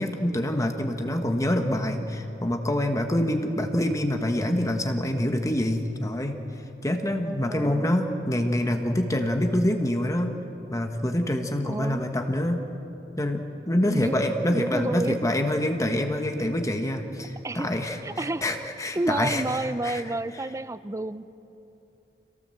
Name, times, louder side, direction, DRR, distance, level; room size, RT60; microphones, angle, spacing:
voice 1, 0.0-6.4 6.8-10.3 10.7-12.6 13.2-20.0, left 1 dB, 20° left, 5 dB, 1.3 m, -26 dB
voice 2, 7.2-7.9 11.6-12.1 13.9-15.2 17.4-17.7 18.0-18.5 19.0-21.3, right 2 dB, 15° right, 14 dB, 0.5 m, -30 dB
26.5 x 17.5 x 7.7 m, 2.9 s
head